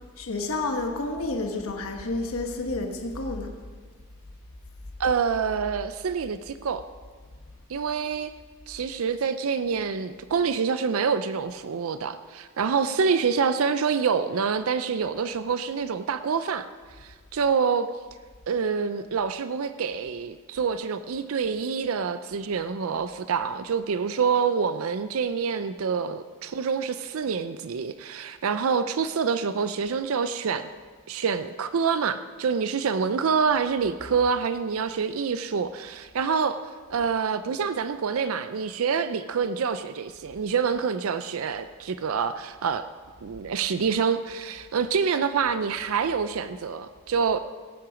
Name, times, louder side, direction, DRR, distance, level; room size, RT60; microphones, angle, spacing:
voice 1, 0.2-3.5, left 2 dB, 80° left, 3 dB, 1.2 m, -30 dB
voice 2, 5.0-6.8 7.7-8.3 8.7-16.7 17.0-17.9 18.5-30.7 31.1-36.6 36.9-42.8 43.2-47.4, right 6 dB, 75° right, 11 dB, 0.5 m, -26 dB
17.5 x 8.8 x 5.1 m, 1.5 s
head